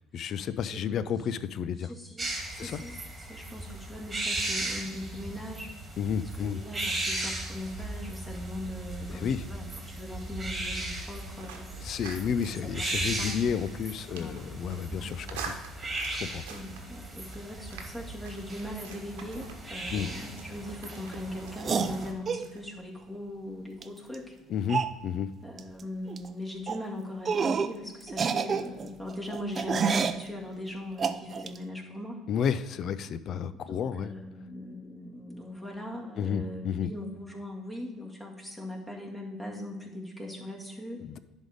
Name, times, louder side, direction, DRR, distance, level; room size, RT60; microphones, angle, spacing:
voice 1, 0.1-1.9 2.5-2.8 6.0-6.6 9.1-9.4 11.8-15.5 16.1-16.4 19.9-20.1 24.5-25.3 32.3-34.1 36.2-36.9 41.0-41.2, left 7 dB, 55° left, 14 dB, 0.4 m, -31 dB
voice 2, 0.6-1.1 1.8-5.7 6.3-11.7 12.6-13.7 14.1-14.5 14.9-15.5 16.5-24.4 25.4-32.2 33.5-41.0, left 1 dB, 10° left, -1 dB, 2.0 m, -40 dB
sound 1, 2.2-22.1, right 2 dB, 20° right, 2.0 m, -37 dB
sound 2, 11.0-22.6, right 6 dB, 80° right, 1.0 m, -47 dB
sound 3, 21.6-22.5 23.8-23.9 24.1-24.2 24.7-25.0 25.6-25.8 26.1-26.3 26.7-26.8 27.3-27.8 28.1-30.2 31.0-31.6, right 6 dB, 40° right, 0.5 m, -28 dB
10.5 x 3.6 x 5.1 m, 1.2 s
hypercardioid pair, 65°, 0 cm